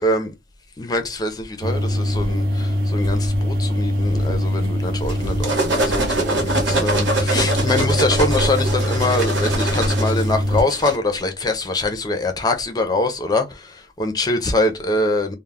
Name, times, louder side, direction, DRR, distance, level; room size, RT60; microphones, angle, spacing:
voice 1, 0.8-15.4, left 2 dB, 20° left, 0.4 m, -23 dB
sound 1, 1.6-10.6, equal, 50° right, 0.5 m, -23 dB
sound 2, 5.1-11.0, right 2 dB, 80° right, 1.0 m, -23 dB
2.2 x 2.0 x 3.4 m
head